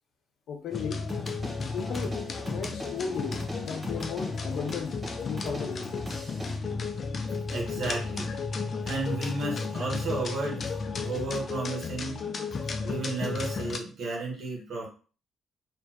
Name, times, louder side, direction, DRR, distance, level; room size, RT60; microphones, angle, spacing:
voice 1, 0.5-1.1 1.7-2.2 2.4-6.1 8.3-8.4 13.5-13.6, left 6 dB, 75° left, 0.8 m, -36 dB
sound 1, 0.7-13.8, left 4 dB, 45° left, 0.6 m, -34 dB
sound 2, 1.1-6.6, right 1 dB, 20° right, 1.3 m, -41 dB
voice 2, 7.5-8.3 8.8-12.2 12.8-14.9, right 2 dB, 70° right, 1.6 m, -33 dB
4.3 x 3.0 x 3.0 m
cardioid pair, 90°, 0 cm